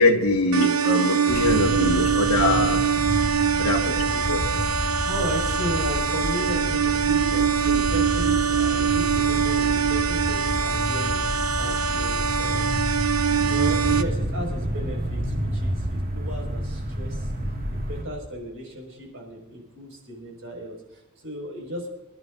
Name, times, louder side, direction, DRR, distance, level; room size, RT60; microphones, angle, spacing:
voice 1, 0.0-2.8 3.6-4.4, left 2 dB, 90° left, 0 dB, 1.7 m, -23 dB
sound 1, 0.5-14.0, right 7 dB, 85° right, 0.8 m, -23 dB
sound 2, 1.3-18.0, equal, 45° right, 2.1 m, -29 dB
voice 2, 5.0-13.0 13.4-17.3 17.7-21.9, equal, 65° right, 0 dB, 5.6 m, -35 dB
27.0 x 12.5 x 2.6 m, 1.1 s
head